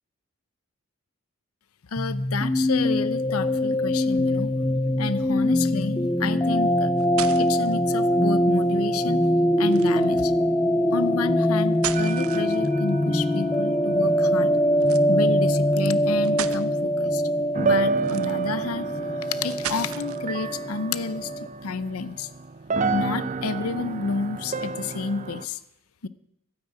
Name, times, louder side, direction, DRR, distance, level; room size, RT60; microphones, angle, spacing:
voice 1, 1.9-4.5 5.0-6.9 7.4-9.2 9.6-10.3 10.9-14.6 15.1-17.2 17.6-18.9 19.3-21.3 21.6-22.3 22.9-25.6 26.0-26.1, left 4 dB, 90° left, 15 dB, 0.7 m, -30 dB
sound 1, 2.0-21.5, equal, 10° left, 0.7 m, -23 dB
sound 2, 6.7-7.7 9.7-10.1 11.6-12.9 14.8-15.1 15.8-15.9 16.2-16.7 18.0-18.6 19.5-20.3, right 10 dB, 85° right, 0.8 m, -35 dB
sound 3, 11.9-15.3 15.9-16.0 17.6-25.5, right 2 dB, 35° right, 0.6 m, -30 dB
12.5 x 9.8 x 8.9 m, 0.81 s
head